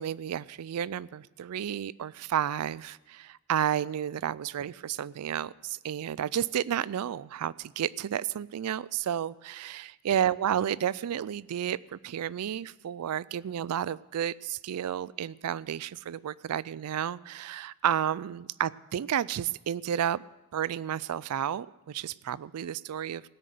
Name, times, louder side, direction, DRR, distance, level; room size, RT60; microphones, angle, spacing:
voice 1, 0.0-20.2 20.5-23.2, right 9 dB, 90° right, 21 dB, 0.4 m, -31 dB
17.5 x 6.5 x 7.8 m, 1.0 s
head